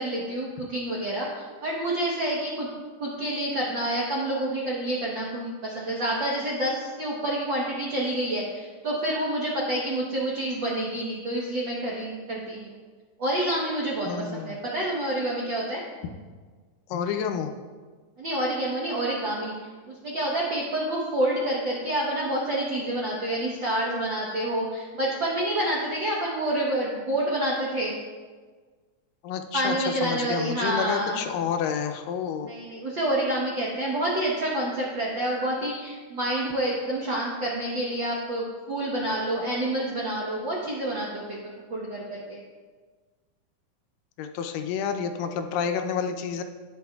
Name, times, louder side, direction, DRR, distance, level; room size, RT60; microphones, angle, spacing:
voice 1, 0.0-2.7 3.0-12.8 13.2-15.8 18.2-19.5 19.9-27.9 29.5-31.2 32.4-42.4, right 1 dB, 70° right, -4 dB, 1.1 m, -28 dB
voice 2, 14.1-14.6 16.9-17.5 29.2-32.5 44.2-46.4, left 7 dB, 90° left, 6 dB, 2.3 m, -29 dB
17.5 x 6.0 x 2.3 m, 1.5 s
omnidirectional pair, 3.8 m